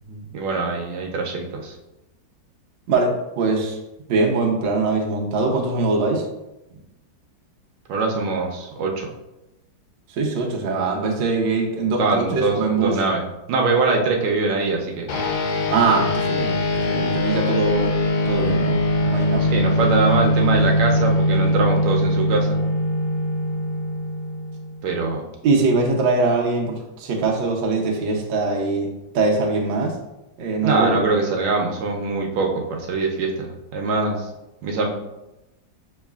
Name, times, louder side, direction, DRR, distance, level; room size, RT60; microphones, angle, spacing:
voice 1, 0.1-1.8 7.9-9.1 12.0-15.1 19.4-22.6 24.8-25.3 30.6-34.3 34.6-34.9, right 3 dB, 90° right, 1 dB, 1.5 m, -23 dB
voice 2, 2.9-3.8 4.1-6.2 10.1-13.0 15.7-16.6 16.9-17.9 18.2-19.5 25.4-28.9 29.1-30.0 30.4-30.9, right 3 dB, 75° right, 0 dB, 1.4 m, -22 dB
sound 1, 15.1-24.8, left 1 dB, 75° left, 1.5 m, -21 dB
6.3 x 3.1 x 2.3 m, 0.95 s
omnidirectional pair, 2.2 m